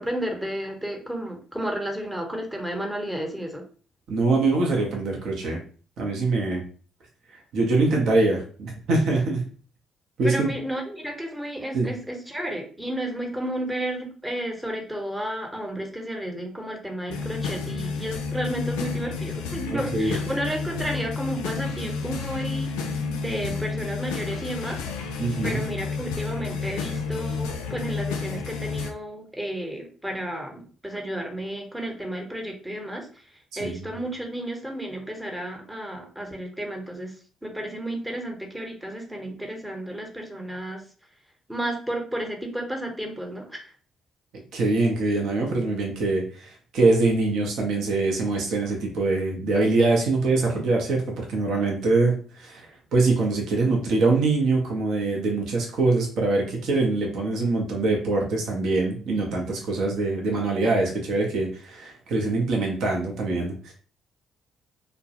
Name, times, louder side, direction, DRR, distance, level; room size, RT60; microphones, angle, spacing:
voice 1, 0.0-3.6 10.2-24.9 25.4-33.3 33.6-40.8 41.5-43.7, right 1 dB, 10° right, 2 dB, 0.8 m, -32 dB
voice 2, 4.1-5.6 6.0-6.7 7.5-9.4 10.2-10.5 11.7-11.9 19.7-20.2 23.5-23.6 25.2-25.6 33.6-33.8 44.5-52.7 52.9-63.7, right 3 dB, 65° right, 0 dB, 0.6 m, -23 dB
sound 1, 17.1-28.9, left 5 dB, 80° left, 0.3 m, -31 dB
2.2 x 2.0 x 2.8 m, 0.40 s
hypercardioid pair, 50°, 0 cm